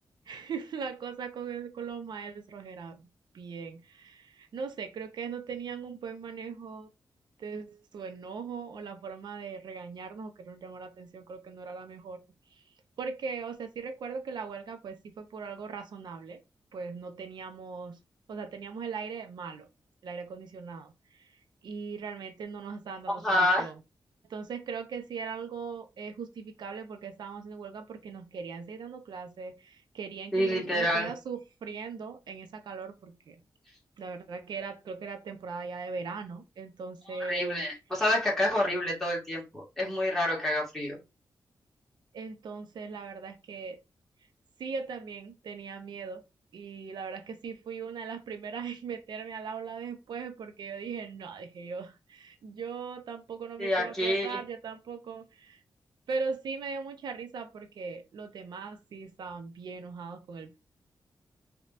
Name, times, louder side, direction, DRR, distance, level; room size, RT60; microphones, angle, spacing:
voice 1, 0.3-3.0 3.3-6.9 7.4-12.2 13.0-16.4 16.7-18.0 18.3-19.6 20.0-20.9 21.2-21.3 21.6-23.7 24.3-33.4 34.0-37.6 42.1-43.8 44.6-46.2 46.5-55.6 56.1-60.6, right 5 dB, 85° right, 7 dB, 0.7 m, -39 dB
voice 2, 23.1-23.7 30.3-31.1 37.1-41.0 53.6-54.4, left 1 dB, 5° left, -5 dB, 2.1 m, -28 dB
5.2 x 2.9 x 2.6 m, 0.25 s
wide cardioid pair, 150°, 7 cm